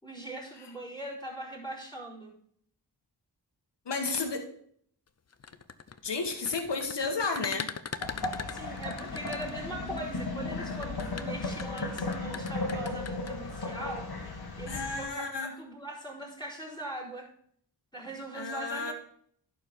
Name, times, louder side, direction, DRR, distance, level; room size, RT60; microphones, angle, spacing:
voice 1, 0.0-2.3 8.5-17.3 17.9-18.9, right 1 dB, 10° left, -5 dB, 4.4 m, -41 dB
voice 2, 3.8-4.4 6.0-7.7 14.7-15.5 18.3-18.9, left 4 dB, 75° left, 4 dB, 1.5 m, -32 dB
sound 1, 5.3-10.0 10.7-13.3, left 6 dB, 40° left, 0.6 m, -40 dB
sound 2, 8.0-15.1, left 2 dB, 60° left, 1.8 m, -35 dB
11.0 x 4.7 x 5.3 m, 0.63 s
cardioid pair, 40°, 42 cm